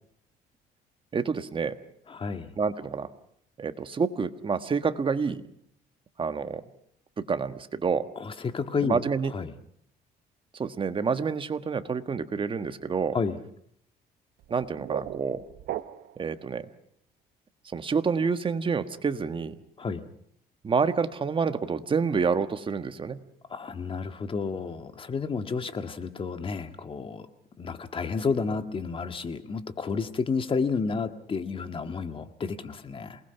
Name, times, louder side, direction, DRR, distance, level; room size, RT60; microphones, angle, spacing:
voice 1, 1.1-1.8 2.6-3.1 3.6-5.4 6.2-6.6 7.2-8.1 8.8-9.3 10.5-13.2 14.5-15.4 16.2-16.7 17.7-19.5 20.6-23.2, right 5 dB, 30° right, 10 dB, 1.5 m, -28 dB
voice 2, 2.1-2.5 8.2-9.0 9.3-9.5 13.1-13.4 19.8-20.0 23.5-27.3 27.6-33.2, left 5 dB, 30° left, 9 dB, 1.8 m, -31 dB
sound 1, 14.4-16.3, right 12 dB, 70° right, 1.0 m, -37 dB
28.0 x 20.0 x 5.9 m, 0.69 s
cardioid pair, 110°, 17 cm